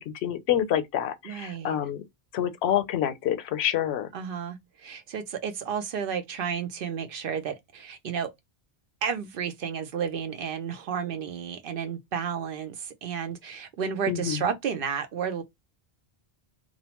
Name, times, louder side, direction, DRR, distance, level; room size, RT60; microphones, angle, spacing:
voice 1, 0.2-2.0 2.3-4.1 14.1-14.4, left 10 dB, 85° left, 0.8 m, -27 dB
voice 2, 1.2-1.8 4.1-8.3 9.0-15.4, right 7 dB, 65° right, 0.7 m, -32 dB
2.6 x 2.0 x 2.8 m
omnidirectional pair, 1.1 m